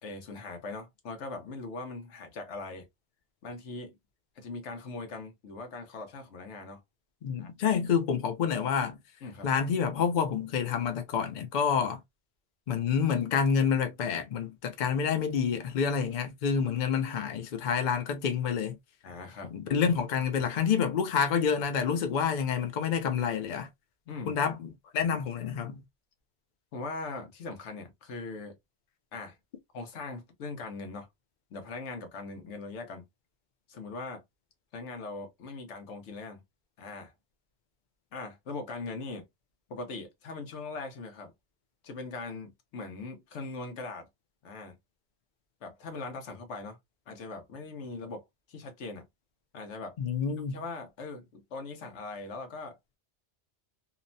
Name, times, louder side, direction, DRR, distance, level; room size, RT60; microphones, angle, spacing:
voice 1, 0.0-2.9 3.4-3.9 4.4-6.8 7.4-7.5 9.2-9.5 19.0-19.5 24.1-24.4 26.7-28.6 29.1-29.4 29.7-31.1 31.5-33.1 33.7-34.2 34.7-36.4 36.8-37.1 38.1-39.3 39.7-41.3 41.8-44.1 44.4-44.7 45.6-46.8 47.1-48.2 48.5-49.0 49.5-50.0 50.5-52.8, left 3 dB, 85° left, 1.1 m, -40 dB
voice 2, 7.2-9.0 9.4-12.0 12.7-18.8 19.4-23.7 24.3-25.8 50.0-50.6, left 7 dB, 55° left, 0.6 m, -28 dB
2.8 x 2.1 x 2.5 m
omnidirectional pair, 1.2 m